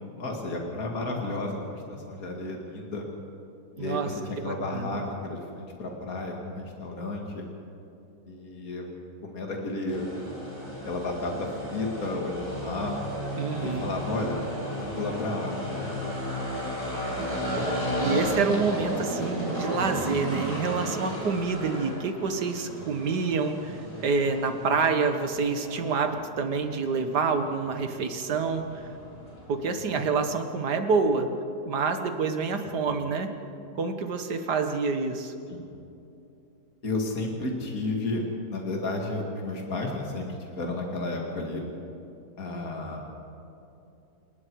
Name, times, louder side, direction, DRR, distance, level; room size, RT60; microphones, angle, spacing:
voice 1, 0.2-3.1 3.8-7.4 8.3-8.9 9.2-10.1 10.9-13.0 13.6-14.4 14.7-16.0 17.2-17.7 29.7-30.0 32.6-32.8 35.5-35.6 36.8-38.2 38.5-41.6 42.4-43.1, left 2 dB, 60° left, 1 dB, 2.7 m, -32 dB
voice 2, 3.8-4.1 4.4-5.0 13.4-14.0 18.0-28.8 29.5-31.3 31.7-33.3 33.8-35.3, right 4 dB, 85° right, 7 dB, 2.0 m, -27 dB
sound 1, 9.9-29.8, equal, 20° left, 6.2 m, -34 dB
28.5 x 19.5 x 4.8 m, 2.8 s
omnidirectional pair, 1.7 m